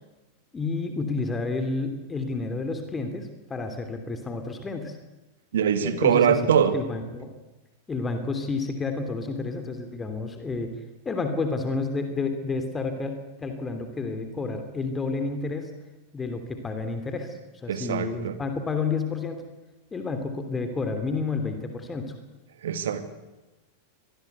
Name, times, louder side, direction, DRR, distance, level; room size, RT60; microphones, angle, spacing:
voice 1, 0.5-5.0 5.8-7.3 7.9-10.7 11.0-15.7 16.1-17.4 17.6-19.5 19.9-22.1, left 4 dB, 15° left, 7 dB, 3.0 m, -30 dB
voice 2, 5.5-6.8 17.7-18.3 22.6-23.0, right 8 dB, 60° right, 10 dB, 2.3 m, -22 dB
25.0 x 20.5 x 8.3 m, 1.1 s
figure-of-eight pair, 90°, 0 cm